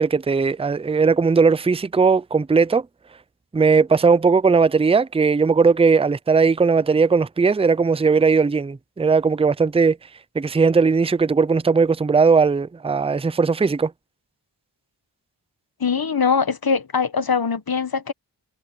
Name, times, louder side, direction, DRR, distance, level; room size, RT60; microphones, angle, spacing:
voice 1, 0.0-2.9 3.5-10.0 10.3-13.9, right 5 dB, 15° right, 0.5 m, -18 dB
voice 2, 15.8-18.1, left 5 dB, 50° left, 1.5 m, -22 dB
cardioid pair, 55°, 45 cm